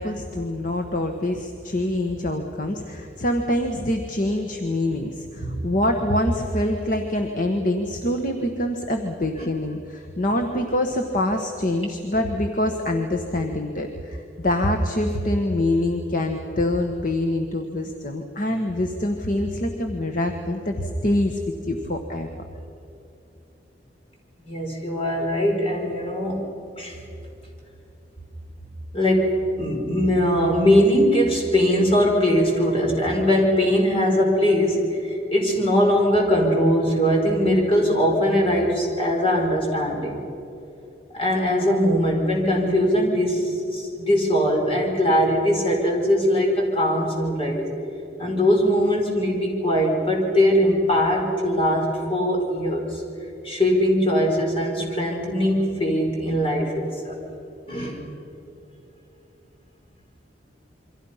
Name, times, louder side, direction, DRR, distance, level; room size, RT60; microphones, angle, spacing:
voice 1, 0.0-22.3, left 1 dB, 50° left, 4 dB, 1.4 m, -25 dB
voice 2, 24.5-27.0 28.9-40.2 41.1-47.7 48.2-53.0 53.4-57.1 57.7-58.0, equal, 30° left, 0 dB, 4.8 m, -21 dB
28.0 x 24.0 x 5.7 m, 2.8 s
head